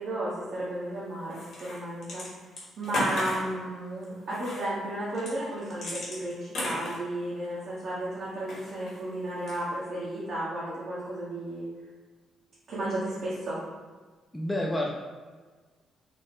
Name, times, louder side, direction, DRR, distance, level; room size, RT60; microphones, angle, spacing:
voice 1, 0.0-2.2 2.8-11.7 12.7-13.6, right 1 dB, 60° right, -9 dB, 1.1 m, -33 dB
sound 1, 1.3-2.3 2.6-3.5 4.3-4.6 5.1-7.6 8.4-9.0 9.4-9.8, left 1 dB, 60° left, 1.5 m, -35 dB
voice 2, 14.3-15.0, left 1 dB, 10° left, -2 dB, 0.5 m, -30 dB
4.2 x 2.1 x 3.7 m, 1.4 s
cardioid pair, 90°, 0 cm